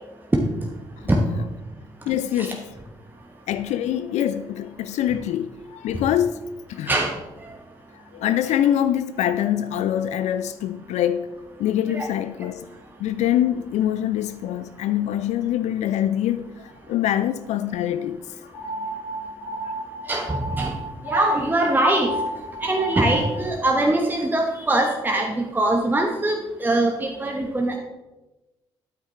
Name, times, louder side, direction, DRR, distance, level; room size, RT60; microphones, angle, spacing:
voice 1, 2.1-2.7 3.5-6.9 7.9-12.7 13.0-18.5, left 11 dB, 55° left, 0.4 m, -24 dB
sound 1, 18.5-23.4, equal, 75° left, 2.2 m, -31 dB
voice 2, 20.1-20.8 21.0-22.1 22.6-27.8, right 1 dB, 15° right, 1.1 m, -22 dB
9.4 x 8.1 x 3.1 m
figure-of-eight pair, 45°, 14 cm